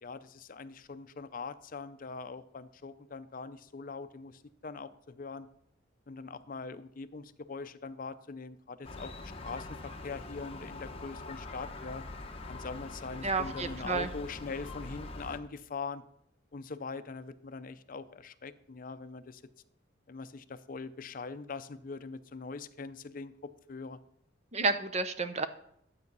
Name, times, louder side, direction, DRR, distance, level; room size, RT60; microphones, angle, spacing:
voice 1, 0.0-5.5 6.1-9.7 10.0-12.0 12.5-16.0 16.5-19.4 20.1-23.3 23.7-24.0, left 4 dB, 45° left, 12 dB, 0.5 m, -42 dB
Gull seagull, 8.8-15.4, left 2 dB, 30° left, 1.0 m, -43 dB
voice 2, 13.2-14.1 24.5-25.5, right 4 dB, 35° right, 11 dB, 0.7 m, -30 dB
12.0 x 8.2 x 5.4 m, 0.73 s
head